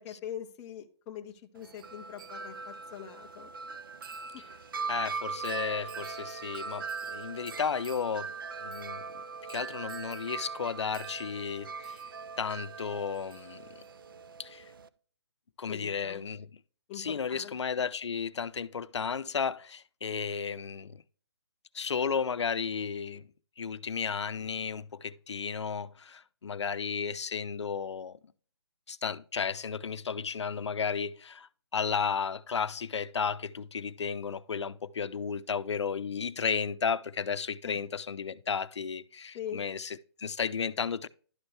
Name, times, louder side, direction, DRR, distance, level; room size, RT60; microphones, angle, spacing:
voice 1, 0.0-3.5 15.7-16.2 16.9-17.6 37.6-37.8 39.3-39.6, left 10 dB, 10° left, 0.4 m, -42 dB
Wind chime, 1.6-14.9, right 5 dB, 50° right, 0.5 m, -40 dB
voice 2, 4.9-8.3 8.6-9.1 9.5-12.0 12.4-13.7 14.4-14.7 15.6-16.5 16.9-21.0 21.7-23.3 23.6-28.2 28.9-41.1, left 6 dB, 85° left, 0.6 m, -33 dB
11.5 x 4.4 x 3.2 m
hypercardioid pair, 165°, 14 cm